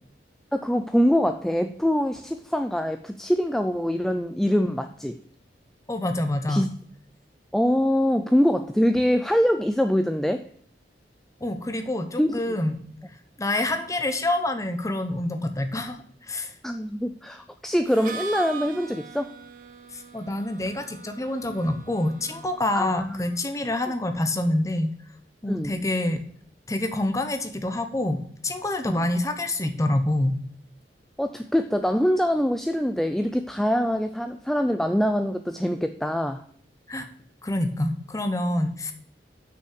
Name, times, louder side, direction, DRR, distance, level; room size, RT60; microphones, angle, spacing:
voice 1, 0.5-5.2 6.5-6.7 7.5-10.4 12.2-12.4 16.6-19.3 22.7-23.2 25.5-25.7 28.8-29.1 31.2-36.4, equal, ahead, 7 dB, 0.3 m, -24 dB
voice 2, 5.9-6.7 11.4-12.7 13.4-16.5 19.9-24.9 25.4-26.2 26.7-30.3 36.9-37.1 37.4-38.9, left 1 dB, 20° left, 7 dB, 0.9 m, -27 dB
Harmonica, 17.9-23.6, right 5 dB, 50° right, 0.9 m, -41 dB
6.3 x 5.7 x 6.4 m, 0.62 s
head